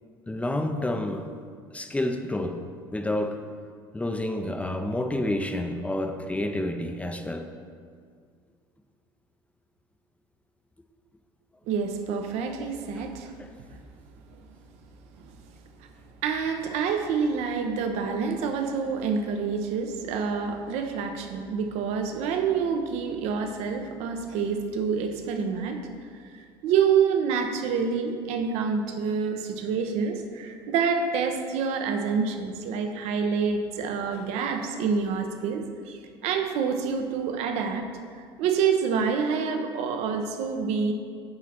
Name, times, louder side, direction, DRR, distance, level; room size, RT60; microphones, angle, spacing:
voice 1, 0.3-1.2 1.7-2.6 2.9-3.4 3.9-7.5 13.4-13.5, left 1 dB, 10° left, 5 dB, 0.6 m, -29 dB
voice 2, 11.7-13.3 13.7-13.8 15.1-15.4 16.2-25.8 26.3-37.9 38.1-40.9, right 6 dB, 65° right, 5 dB, 0.8 m, -27 dB
8.8 x 4.0 x 4.4 m, 2.1 s
hypercardioid pair, 75°, 12 cm